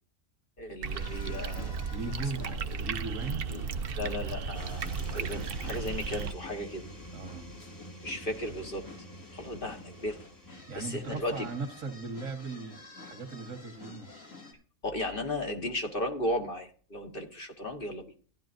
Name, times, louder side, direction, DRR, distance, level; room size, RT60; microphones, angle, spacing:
voice 1, 0.6-1.9 2.4-2.9 3.5-3.6 3.9-6.8 8.0-8.9 9.3-11.5 14.8-18.1, left 1 dB, 45° left, 4 dB, 1.6 m, -36 dB
sound 1, 0.8-6.3, right 5 dB, 55° right, 0.8 m, -35 dB
sound 2, 0.9-14.5, left 3 dB, 80° left, 2.8 m, -50 dB
voice 2, 1.9-2.5 2.8-3.5 7.1-7.5 10.7-14.1, right 3 dB, 80° right, 4 dB, 2.1 m, -38 dB
sound 3, 4.5-12.1, right 1 dB, 25° left, 2.0 m, -49 dB
15.0 x 11.0 x 2.6 m, 0.40 s
omnidirectional pair, 1.3 m